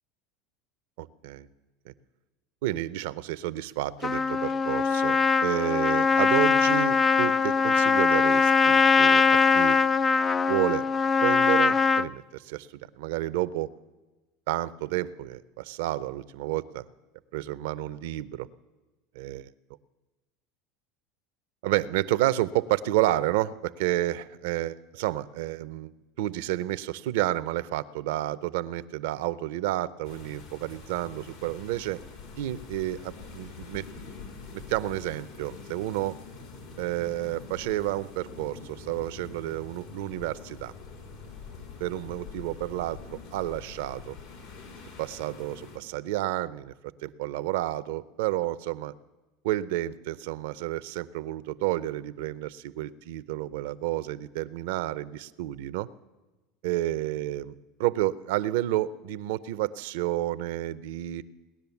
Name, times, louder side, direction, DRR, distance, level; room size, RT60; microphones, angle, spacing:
voice 1, 1.0-1.5 1.9-2.0 2.6-9.8 10.5-10.9 11.2-12.7 13.0-13.7 14.5-16.8 17.3-18.5 19.2-19.5 21.6-25.9 26.2-32.0 32.4-33.9 34.5-36.2 36.8-40.7 41.8-44.2 45.0-46.7 47.0-48.9 49.4-55.9 56.6-61.2, right 15 dB, 75° right, 16 dB, 0.6 m, -30 dB
Trumpet, 4.0-12.1, left 5 dB, 25° left, 0.4 m, -22 dB
sound 1, 30.0-45.8, left 4 dB, 75° left, 3.6 m, -45 dB
19.0 x 10.5 x 7.1 m, 1.2 s
hypercardioid pair, 95°, 0 cm